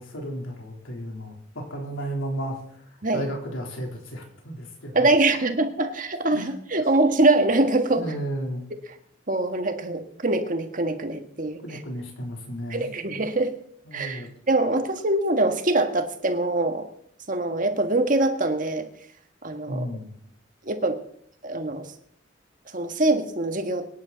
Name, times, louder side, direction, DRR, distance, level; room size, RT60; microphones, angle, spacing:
voice 1, 0.0-5.1 5.4-5.6 6.3-6.5 6.8-6.9 7.9-8.6 11.6-12.9 13.8-14.3 19.7-20.1, equal, 85° left, 1 dB, 3.6 m, -34 dB
voice 2, 4.9-8.0 9.3-11.6 12.7-13.5 13.9-16.9 17.3-18.9 19.4-19.9 20.7-21.0 21.4-21.9 22.7-23.9, right 2 dB, 40° right, 6 dB, 1.7 m, -23 dB
24.0 x 10.5 x 4.1 m, 0.67 s
head